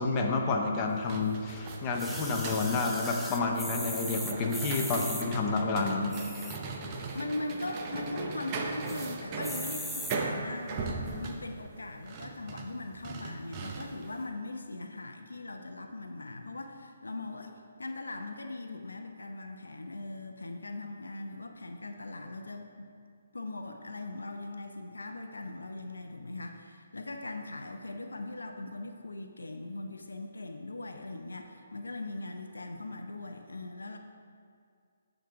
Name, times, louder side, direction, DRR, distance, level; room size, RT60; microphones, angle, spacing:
voice 1, 0.0-6.2, left 3 dB, 25° left, 1 dB, 0.8 m, -29 dB
sound 1, 0.9-14.2, right 4 dB, 30° right, 0.8 m, -39 dB
sound 2, 2.0-5.3 6.0-6.7 7.2-7.3 7.5-7.6 7.9-8.4 8.9-9.1 9.4-10.2 10.9-11.0, equal, ahead, 0.5 m, -39 dB
voice 2, 7.1-17.5 17.8-22.9 23.3-34.0, left 2 dB, 85° left, 5 dB, 0.7 m, -40 dB
10.5 x 4.0 x 5.2 m, 2.2 s
figure-of-eight pair, 145°, 0 cm